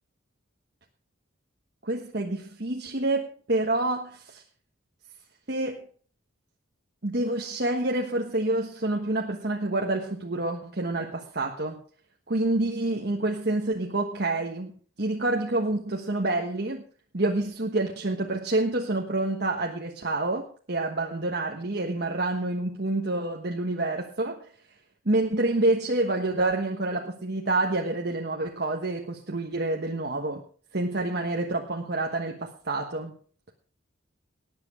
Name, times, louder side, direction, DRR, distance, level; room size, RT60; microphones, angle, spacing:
voice 1, 1.8-4.4 5.5-5.9 7.0-11.8 12.3-16.8 17.1-24.5 25.0-30.4 30.7-33.2, right 2 dB, 55° right, 1 dB, 1.3 m, -28 dB
19.0 x 7.8 x 4.9 m, 0.43 s
head